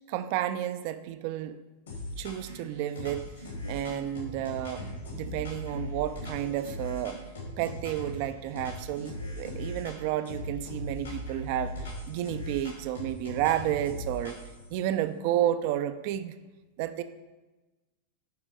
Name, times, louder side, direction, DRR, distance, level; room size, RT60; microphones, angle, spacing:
voice 1, 0.1-1.6 2.2-3.3 3.7-7.2 7.6-14.4 14.7-16.3 16.8-17.0, right 12 dB, 45° right, 11 dB, 0.5 m, -31 dB
sound 1, 1.9-2.6 2.9-8.2 8.5-10.0 10.2-14.7, left 1 dB, 70° left, 3.0 m, -39 dB
sound 2, 2.5-3.1 3.4-4.0 4.4-5.0 5.2-5.9 6.2-6.8 7.1-7.8 8.0-8.7 9.0-9.7, right 1 dB, 85° right, 1.2 m, -46 dB
10.5 x 5.2 x 4.9 m, 1.1 s
figure-of-eight pair, 90°, 0 cm